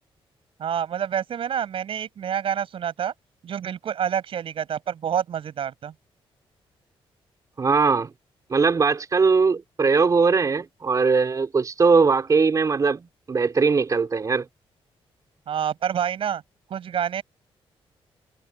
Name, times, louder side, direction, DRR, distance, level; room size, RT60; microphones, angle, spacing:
voice 1, 0.6-3.1 3.4-5.9 15.5-16.4 16.7-17.2, right 9 dB, 65° right, 7.5 m, -27 dB
voice 2, 7.6-8.1 8.5-14.4, right 4 dB, 35° right, 4.6 m, -20 dB
cardioid pair, 120°, 10 cm